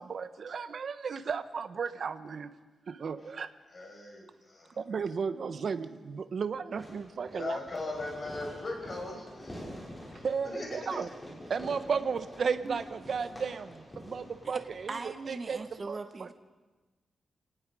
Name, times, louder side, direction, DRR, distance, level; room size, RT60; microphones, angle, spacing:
voice 1, 0.0-2.5 2.9-3.5 4.8-7.6 10.2-11.1 11.5-15.6 15.9-16.3, right 5 dB, 55° right, 11 dB, 1.0 m, -34 dB
voice 2, 3.7-4.8 7.3-9.8 10.1-11.0, left 2 dB, 40° left, 0 dB, 5.8 m, -39 dB
Fireworks, 6.8-15.8, left 1 dB, 15° left, 5.9 m, -48 dB
voice 3, 14.9-16.3, right 3 dB, 30° right, 7 dB, 1.2 m, -39 dB
28.5 x 18.5 x 4.9 m, 1.2 s
wide cardioid pair, 150°, 0 cm